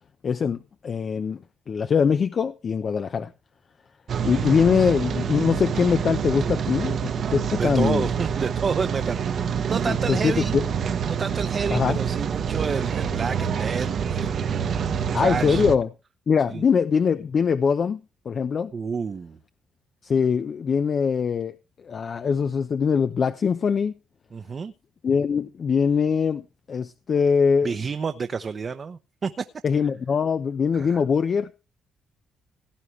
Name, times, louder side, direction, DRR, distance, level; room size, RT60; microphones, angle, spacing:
voice 1, 0.2-1.4 1.7-3.3 4.2-8.1 9.9-10.6 11.7-12.0 15.1-15.9 16.3-18.7 20.0-21.5 21.8-23.9 25.0-27.7 29.6-31.5, left 6 dB, 50° left, 0.9 m, -22 dB
Rain, 4.1-15.8, right 7 dB, 60° right, 1.2 m, -27 dB
voice 2, 7.6-10.6 11.1-14.7 15.0-15.6 16.5-16.6 18.7-19.4 24.3-24.7 27.6-29.4 30.7-31.0, right 5 dB, 40° right, 0.9 m, -30 dB
17.5 x 9.6 x 3.3 m
cardioid pair, 90°, 0 cm